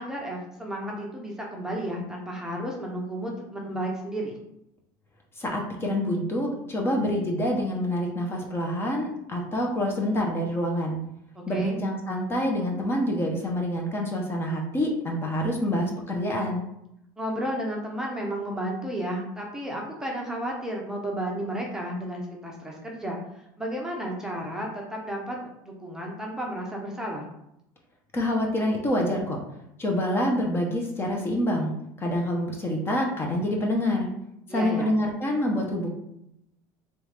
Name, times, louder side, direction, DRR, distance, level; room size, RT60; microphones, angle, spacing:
voice 1, 0.0-4.4 11.3-11.8 17.2-23.2 23.6-25.4 25.6-27.3 34.5-34.9, right 1 dB, 5° right, -2 dB, 0.8 m, -32 dB
voice 2, 5.4-11.0 11.5-16.6 28.1-29.4 29.8-31.7 32.0-34.1 34.5-35.9, left 1 dB, 25° left, 0 dB, 0.8 m, -26 dB
3.4 x 3.1 x 3.3 m, 0.80 s
supercardioid pair, 120°, 10 cm